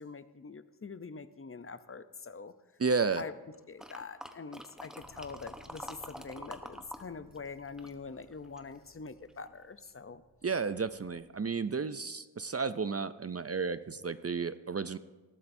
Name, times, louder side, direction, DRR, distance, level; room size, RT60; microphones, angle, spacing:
voice 1, 0.0-2.5 3.2-3.3 3.7-10.2, left 4 dB, 35° left, 13 dB, 0.6 m, -44 dB
voice 2, 2.8-3.2 10.4-15.0, right 5 dB, 40° right, 13 dB, 0.4 m, -32 dB
sound 1, 3.8-7.0 7.3-8.8 9.3-9.4, equal, ahead, 0.9 m, -46 dB
Bass guitar, 5.0-11.2, left 2 dB, 80° left, 2.6 m, -62 dB
19.5 x 13.5 x 2.6 m, 1.2 s
wide cardioid pair, 50°, 39 cm